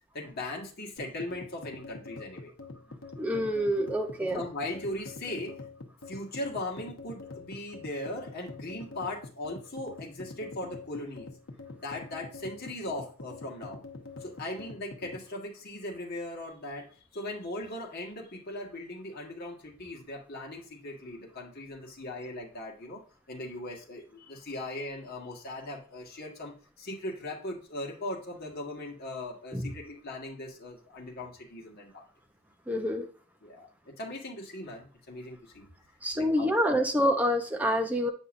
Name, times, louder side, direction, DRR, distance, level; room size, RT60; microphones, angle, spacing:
voice 1, 0.1-2.5 4.3-5.6 6.1-11.3 11.8-13.8 14.2-23.0 23.3-26.5 26.8-32.0 33.4-35.7 36.1-36.8, left 1 dB, 50° left, -2 dB, 1.6 m, -39 dB
sound 1, 1.0-15.3, left 3 dB, 75° left, 0.9 m, -45 dB
voice 2, 3.2-4.4 29.5-29.7 32.7-33.1 36.0-38.1, equal, 10° right, 4 dB, 0.7 m, -27 dB
8.5 x 5.4 x 2.6 m, 0.41 s
head